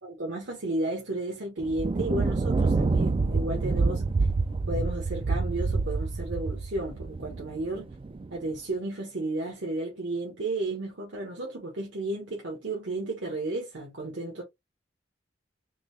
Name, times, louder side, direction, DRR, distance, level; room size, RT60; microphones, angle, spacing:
voice 1, 0.0-4.0 4.7-7.9 8.3-14.4, right 2 dB, 80° right, 1.1 m, -33 dB
Thunder, 1.6-8.3, right 3 dB, 30° right, 0.3 m, -27 dB
3.7 x 2.3 x 3.1 m
head